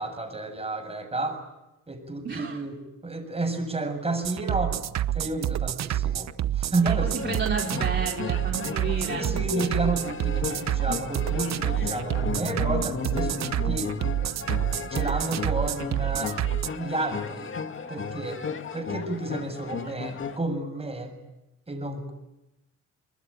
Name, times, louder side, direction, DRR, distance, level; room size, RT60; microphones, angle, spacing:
voice 1, 0.0-1.4 1.9-2.8 3.0-4.8 5.1-7.1 9.1-13.9 14.9-16.4 16.7-17.5 17.9-18.4 18.7-21.1 21.7-22.1, right 2 dB, 20° right, 6 dB, 7.7 m, -31 dB
voice 2, 2.2-2.6 6.8-9.4, right 5 dB, 40° right, 1 dB, 3.3 m, -32 dB
sound 1, 4.2-16.7, right 11 dB, 65° right, 1.0 m, -28 dB
sound 2, 7.0-20.4, left 5 dB, 40° left, 2.3 m, -35 dB
28.5 x 21.5 x 9.1 m, 0.95 s
cardioid pair, 90°, 30 cm